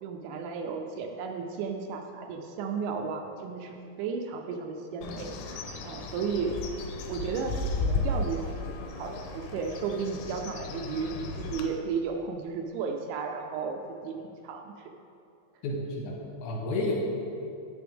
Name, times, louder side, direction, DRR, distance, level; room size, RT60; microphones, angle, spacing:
voice 1, 0.0-6.5 7.1-14.9, right 5 dB, 80° right, 3 dB, 2.8 m, -34 dB
Bird, 5.0-11.7, left 3 dB, 90° left, 3.1 m, -34 dB
voice 2, 15.6-16.9, left 2 dB, 70° left, -3 dB, 3.1 m, -31 dB
9.3 x 9.2 x 3.5 m, 2.6 s
omnidirectional pair, 5.4 m